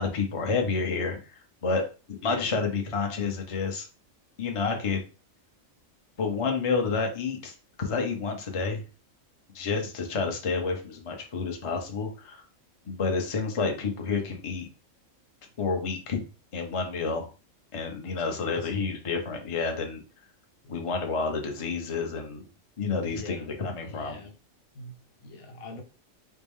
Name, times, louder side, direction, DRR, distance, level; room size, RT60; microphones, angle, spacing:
voice 1, 0.0-1.8 2.2-3.8 4.4-5.0 6.2-8.8 9.5-12.4 12.9-14.7 15.6-16.2 16.5-17.3 17.7-20.0 20.7-22.5 22.8-24.2, left 4 dB, 35° left, 0.6 m, -29 dB
voice 2, 2.2-2.6 18.0-18.9 23.1-23.5 23.8-24.3 24.7-25.8, left 3 dB, 85° left, 1.3 m, -44 dB
4.3 x 2.1 x 3.5 m
omnidirectional pair, 1.4 m